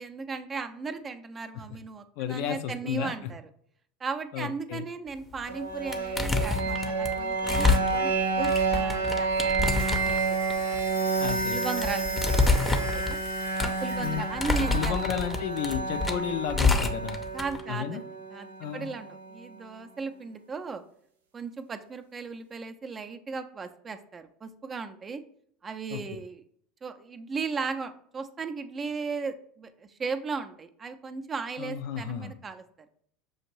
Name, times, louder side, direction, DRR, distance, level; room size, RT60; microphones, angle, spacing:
voice 1, 0.0-3.4 4.0-10.8 11.5-13.2 13.6-15.0 17.3-20.8 21.3-25.2 25.6-26.4 26.8-32.6, right 5 dB, 30° right, 8 dB, 0.5 m, -36 dB
voice 2, 2.2-3.1 4.3-4.8 11.2-11.6 14.0-14.2 14.7-17.2 17.7-18.0 18.6-18.9 25.9-26.0 31.6-32.3, left 9 dB, 60° left, 8 dB, 0.4 m, -32 dB
sound 1, 5.3-5.6 5.9-17.6, left 3 dB, 15° left, 0.6 m, -27 dB
sound 2, 5.5-19.4, right 4 dB, 80° right, 0.5 m, -30 dB
sound 3, 9.7-14.3, equal, 85° left, 0.9 m, -41 dB
6.3 x 2.5 x 2.9 m, 0.62 s
figure-of-eight pair, 70°, 0 cm